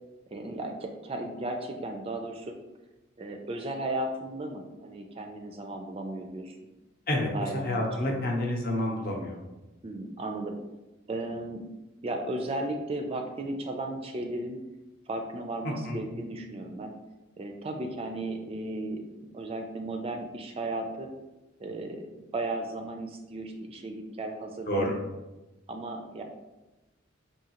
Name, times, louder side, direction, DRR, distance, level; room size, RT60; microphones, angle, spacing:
voice 1, 0.3-2.5 3.2-6.6 7.3-7.8 8.1-8.3 9.8-10.5 11.1-11.6 12.0-14.6 15.1-16.9 17.4-19.0 19.3-21.1 21.6-24.9 25.7-26.2, right 2 dB, 30° right, 4 dB, 0.3 m, -35 dB
voice 2, 7.1-9.4 15.6-16.0 24.7-25.0, left 1 dB, 45° left, 0 dB, 0.7 m, -29 dB
4.8 x 2.7 x 2.9 m, 1.0 s
head